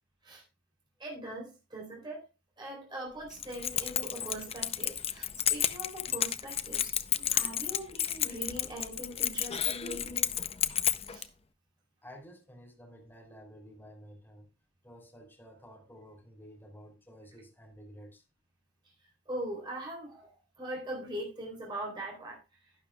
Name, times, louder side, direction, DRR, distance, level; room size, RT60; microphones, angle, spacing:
voice 1, 1.0-2.2 2.6-6.9 7.3-10.3 11.1-11.3 19.3-22.4, right 1 dB, 25° right, 3.9 m, -41 dB
Keys jangling, 3.3-11.3, left 10 dB, 30° left, 0.5 m, -32 dB
voice 2, 12.0-14.5 14.8-18.2, equal, 10° left, 3.1 m, -52 dB
11.5 x 11.5 x 2.3 m
head